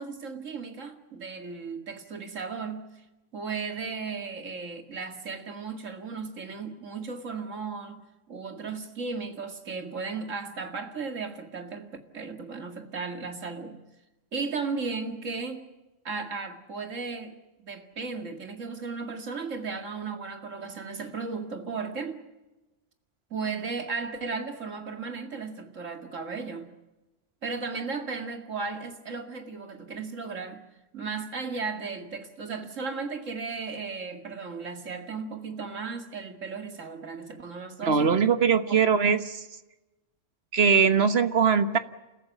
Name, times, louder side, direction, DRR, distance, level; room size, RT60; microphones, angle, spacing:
voice 1, 0.0-2.9 3.3-8.0 8.3-13.8 14.3-15.7 16.0-22.2 23.3-26.7 27.4-30.6 30.9-38.2 38.7-38.8, right 4 dB, 85° right, 2.5 m, -35 dB
voice 2, 37.8-39.4 40.5-41.8, right 6 dB, 55° right, 1.4 m, -21 dB
29.5 x 14.5 x 9.1 m
omnidirectional pair, 1.3 m